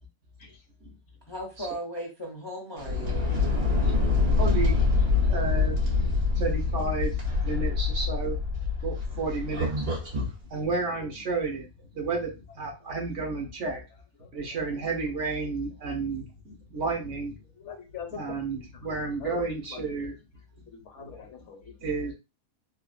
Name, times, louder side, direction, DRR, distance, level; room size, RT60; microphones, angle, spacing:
voice 1, 1.3-3.3, equal, 30° left, -1 dB, 0.5 m, -37 dB
sound 1, 2.8-10.3, left 4 dB, 80° right, 1.8 m, -25 dB
voice 2, 3.8-5.8 6.3-8.4 8.8-10.0 10.5-13.8 14.2-17.3 18.1-20.1 21.0-21.1 21.8-22.1, right 3 dB, 60° right, 1 dB, 1.2 m, -32 dB
voice 3, 5.1-5.5 14.2-14.7 17.5-18.4 18.7-18.9 19.2-20.1 20.7-21.9, left 6 dB, 65° left, 4 dB, 1.0 m, -44 dB
3.5 x 2.4 x 2.4 m, 0.27 s
omnidirectional pair, 1.5 m